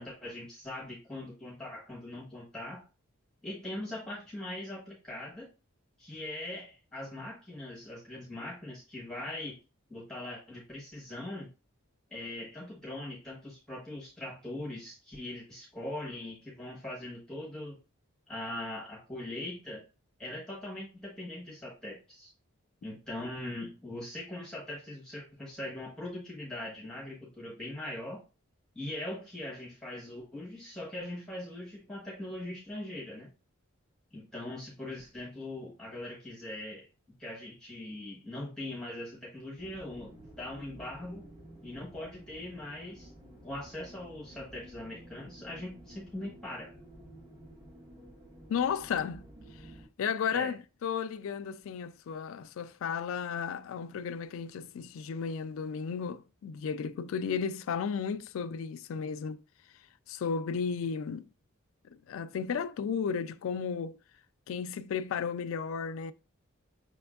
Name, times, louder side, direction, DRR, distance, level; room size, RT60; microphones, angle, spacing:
voice 1, 0.0-2.8 3.4-5.5 6.0-9.6 9.9-11.5 12.1-17.8 18.3-19.9 20.2-22.3 22.8-28.2 28.7-33.3 34.1-36.9 37.2-41.3 41.6-43.1 43.4-46.7 50.3-50.5, left 1 dB, 5° left, 1.2 m, -41 dB
sound 1, 39.6-49.9, equal, 20° right, 1.4 m, -52 dB
voice 2, 48.5-49.3 50.0-59.4 60.1-61.3 61.9-64.0 64.5-66.1, left 6 dB, 70° left, 0.3 m, -34 dB
5.7 x 3.4 x 2.3 m
head